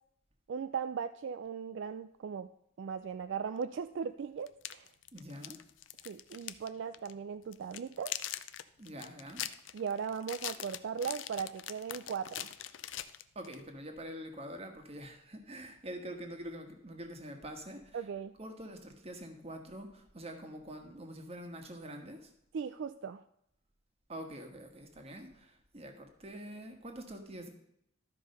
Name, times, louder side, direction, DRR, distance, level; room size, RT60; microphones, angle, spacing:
voice 1, 0.5-2.5 2.8-4.9 6.1-8.1 9.7-12.5 17.9-18.3 22.5-23.2, right 6 dB, 65° right, 11 dB, 0.3 m, -38 dB
sound 1, 3.6-3.7 4.5-6.7 6.9-7.1 7.5-13.6, left 12 dB, 70° left, 0.5 m, -42 dB
voice 2, 5.1-5.6 8.8-9.4 13.3-18.0 18.4-22.3 24.1-27.5, equal, 30° right, 4 dB, 1.4 m, -45 dB
12.5 x 5.3 x 5.4 m, 0.75 s
head